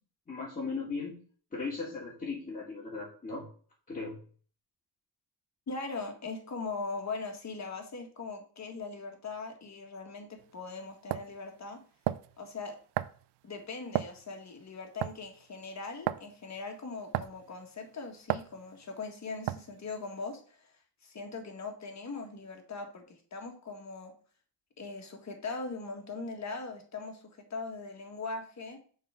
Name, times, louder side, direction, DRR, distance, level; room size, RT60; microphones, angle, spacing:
voice 1, 0.3-1.1 1.5-3.4 3.9-4.2, left 4 dB, 20° left, -6 dB, 2.2 m, -37 dB
voice 2, 5.7-11.8 12.4-12.8 13.4-20.7 21.0-24.1 24.8-28.8, left 3 dB, 45° left, 3 dB, 1.8 m, -40 dB
sound 1, 10.4-10.5 11.1-11.3 12.1-12.3 13.0-13.2 13.9-14.2 15.0-15.3 16.1-16.3 17.1-17.4 18.3-18.5 19.5-19.8, right 14 dB, 85° right, 0.5 m, -32 dB
6.8 x 4.1 x 5.1 m, 0.44 s
cardioid pair, 95°, 40 cm